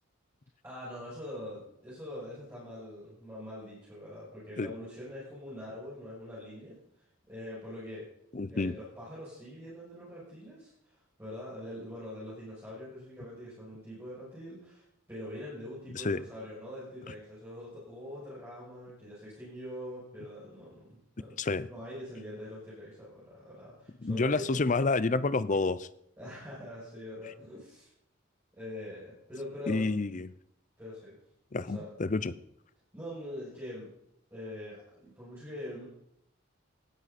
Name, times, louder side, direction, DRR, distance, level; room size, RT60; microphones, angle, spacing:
voice 1, 0.6-6.8 7.3-8.1 8.5-21.4 21.7-24.7 26.2-27.9 28.6-29.9 30.8-31.2 31.6-31.9 32.2-32.3 32.9-33.9 34.3-35.9, left 1 dB, 10° right, -9 dB, 6.8 m, -43 dB
voice 2, 8.3-8.8 15.9-16.2 21.4-21.7 24.0-25.9 29.7-30.3 31.5-32.3, left 3 dB, 40° left, 15 dB, 0.6 m, -29 dB
18.0 x 13.0 x 4.3 m, 0.74 s
head